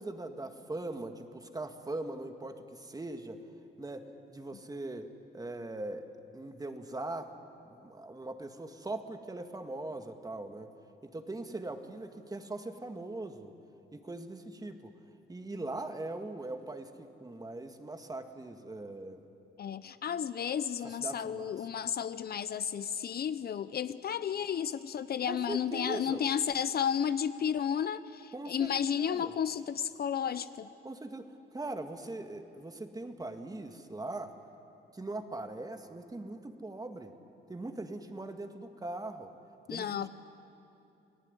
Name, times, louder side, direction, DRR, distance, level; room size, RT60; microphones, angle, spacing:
voice 1, 0.0-3.4 3.8-6.1 6.3-7.3 7.7-10.7 11.0-13.5 13.9-14.9 15.3-19.2 20.8-21.5 25.3-26.2 28.3-29.3 30.8-34.3 34.9-37.2 37.5-39.3 39.7-40.1, right 2 dB, 20° right, 7 dB, 1.9 m, -41 dB
voice 2, 19.6-30.7 39.7-40.1, left 8 dB, 50° left, 14 dB, 0.7 m, -32 dB
28.5 x 18.0 x 9.8 m, 2.8 s
cardioid pair, 90°, 20 cm